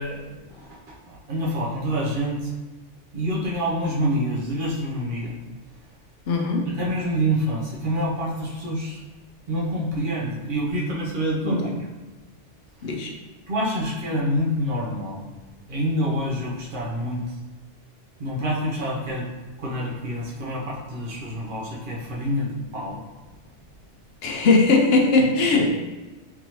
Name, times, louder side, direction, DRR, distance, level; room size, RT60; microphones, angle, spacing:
voice 1, 0.0-2.5 3.1-5.4 6.7-9.0 9.5-11.7 12.8-12.9 13.5-15.3 15.7-17.4 18.2-19.3 19.6-23.0 23.4-23.5, equal, 50° right, -5 dB, 0.9 m, -27 dB
voice 2, 6.3-6.7 11.4-11.7 12.8-13.1 24.2-25.8, left 3 dB, 65° left, 1 dB, 0.7 m, -20 dB
3.5 x 2.7 x 3.0 m, 1.3 s
omnidirectional pair, 1.2 m